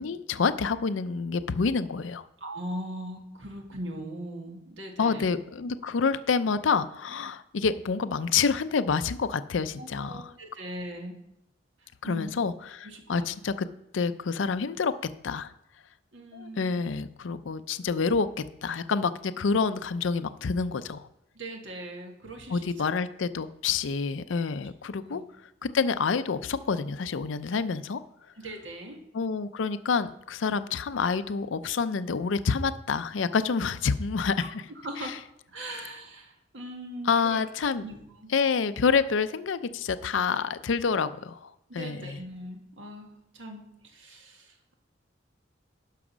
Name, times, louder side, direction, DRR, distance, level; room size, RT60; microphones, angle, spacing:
voice 1, 0.0-2.2 5.0-10.3 12.0-12.5 12.8-13.7 13.9-15.0 15.2-15.5 16.3-21.1 22.5-25.2 25.6-28.0 29.1-34.6 35.0-35.2 35.7-35.8 37.1-37.8 38.3-42.2, left 5 dB, 80° left, 12 dB, 0.5 m, -28 dB
voice 2, 2.4-5.3 9.8-11.2 11.8-12.3 12.8-13.3 16.1-16.9 21.4-22.7 25.1-25.2 28.4-29.0 34.4-34.5 34.8-35.2 35.5-37.4 37.8-38.3 41.7-44.7, right 1 dB, 80° right, 2 dB, 1.9 m, -40 dB
11.5 x 4.9 x 6.1 m, 0.86 s
head